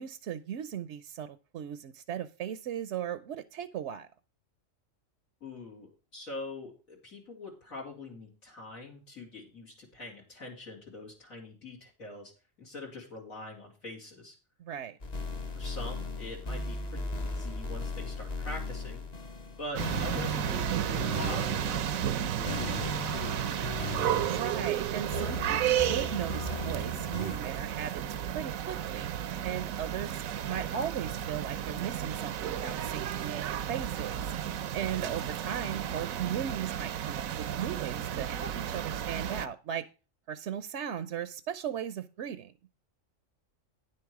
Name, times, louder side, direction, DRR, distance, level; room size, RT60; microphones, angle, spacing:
voice 1, 0.0-4.1 14.6-15.0 24.3-28.0 28.3-29.1 29.4-34.3 34.7-39.8 40.3-42.5, right 9 dB, 65° right, 14 dB, 0.9 m, -37 dB
voice 2, 5.4-12.3 12.6-14.4 15.5-19.1 19.6-23.6 34.9-35.2, left 2 dB, 85° left, -3 dB, 3.6 m, -44 dB
sound 1, 15.0-27.4, left 2 dB, 35° left, 0.9 m, -37 dB
sound 2, 19.7-39.5, right 10 dB, 80° right, 1.1 m, -33 dB
10.0 x 7.7 x 4.8 m, 0.34 s
omnidirectional pair, 1.4 m